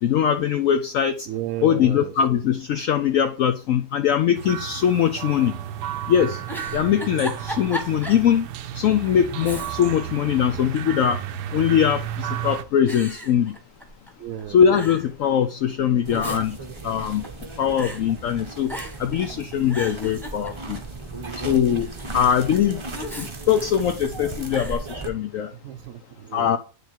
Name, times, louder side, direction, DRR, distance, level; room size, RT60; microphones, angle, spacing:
voice 1, 0.0-1.3 1.6-5.6 6.1-6.4 6.7-8.5 8.7-11.2 11.5-13.6 14.5-16.6 16.8-17.3 17.6-20.8 21.4-22.8 23.2-25.5 26.3-26.6, left 9 dB, 70° left, 0.8 m, -21 dB
voice 2, 1.3-2.1 14.2-14.7 25.6-26.6, right 11 dB, 65° right, 0.9 m, -33 dB
sound 1, 4.3-12.6, right 10 dB, 80° right, 1.2 m, -33 dB
Giggle, 6.4-8.3 8.7-8.8 9.4-10.0 10.4-11.2 11.9-12.3 12.9-14.1 14.4-14.5 14.7-15.1 15.9-17.4 17.8-18.0 18.7-19.1 19.5-20.9 22.9-24.1 24.5-24.8, equal, ahead, 1.1 m, -36 dB
sound 2, 16.0-25.1, right 3 dB, 25° right, 0.6 m, -36 dB
9.5 x 3.4 x 4.4 m
omnidirectional pair, 1.8 m